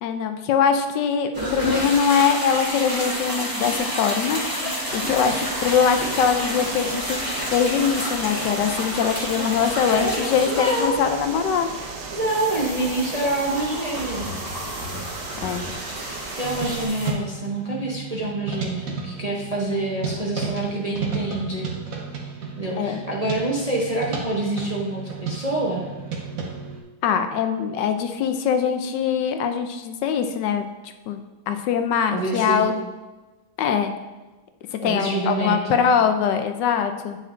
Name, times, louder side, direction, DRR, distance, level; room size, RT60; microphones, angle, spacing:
voice 1, 0.0-4.4 4.9-7.2 7.5-11.7 15.4-15.6 22.8-23.0 27.0-30.7 31.1-32.7 33.6-33.9 34.8-37.2, left 7 dB, 85° left, 7 dB, 1.3 m, -22 dB
sound 1, 1.3-17.1, equal, 15° right, 1.0 m, -30 dB
sound 2, 4.9-16.9, right 4 dB, 80° right, 1.5 m, -36 dB
voice 2, 9.9-11.2 12.1-14.3 16.4-21.7 22.6-25.9 32.1-32.7 34.8-35.8, right 2 dB, 35° right, -4 dB, 0.6 m, -26 dB
sound 3, 16.4-26.8, right 5 dB, 55° right, 1.3 m, -33 dB
8.8 x 6.4 x 2.5 m, 1.2 s
omnidirectional pair, 1.9 m